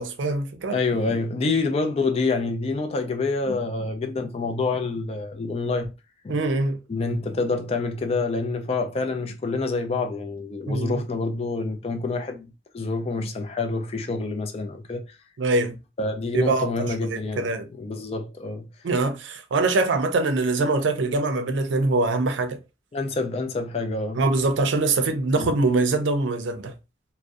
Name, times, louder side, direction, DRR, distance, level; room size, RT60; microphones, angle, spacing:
voice 1, 0.0-0.8 6.3-6.8 10.7-11.0 15.4-15.8 16.3-17.7 18.8-22.6 24.1-26.7, right 3 dB, 90° right, 0.4 m, -23 dB
voice 2, 0.7-5.9 6.2-6.4 6.9-15.0 16.0-17.5 17.8-18.7 22.9-24.2 25.4-25.5, left 3 dB, 35° left, 0.3 m, -27 dB
2.5 x 2.0 x 2.3 m
head